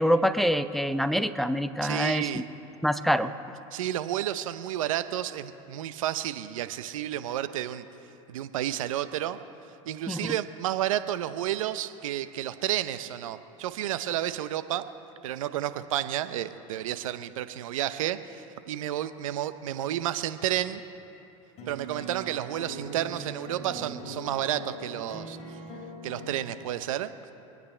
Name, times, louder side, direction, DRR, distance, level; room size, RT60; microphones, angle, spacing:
voice 1, 0.0-2.4 2.8-3.3 10.1-10.4, equal, ahead, 11 dB, 0.6 m, -25 dB
voice 2, 1.8-2.4 3.7-7.8 8.3-9.4 9.9-14.8 15.2-20.8 21.7-25.4 26.0-27.1, right 12 dB, 80° right, 12 dB, 0.7 m, -31 dB
sound 1, 21.6-26.6, right 2 dB, 40° left, 4.0 m, -41 dB
25.5 x 9.5 x 4.4 m, 2.8 s
hypercardioid pair, 95°, 17 cm